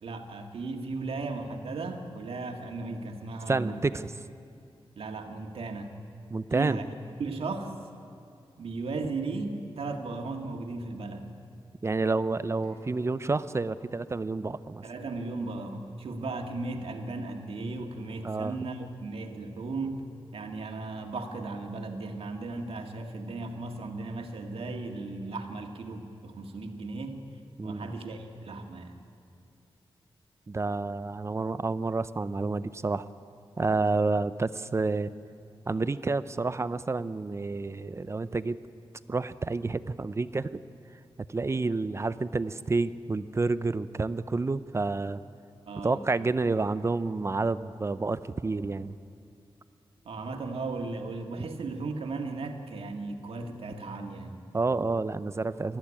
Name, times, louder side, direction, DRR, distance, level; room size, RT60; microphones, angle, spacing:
voice 1, 0.0-3.8 5.0-5.9 6.5-6.8 7.2-7.7 8.6-11.3 14.8-20.1 20.3-27.2 27.6-29.0 45.7-46.0 50.1-54.5, right 3 dB, 85° right, 4 dB, 1.8 m, -36 dB
voice 2, 3.5-4.1 6.3-6.8 11.8-14.8 18.2-18.6 27.6-27.9 30.5-33.1 33.6-35.1 35.7-38.6 39.1-40.6 41.3-45.2 45.8-49.0 54.5-55.8, right 3 dB, 30° right, 14 dB, 0.5 m, -29 dB
Acoustic guitar, 12.6-17.8, left 4 dB, 35° left, 4.0 m, -58 dB
20.5 x 14.0 x 9.9 m, 2.5 s
wide cardioid pair, 130°, 10 cm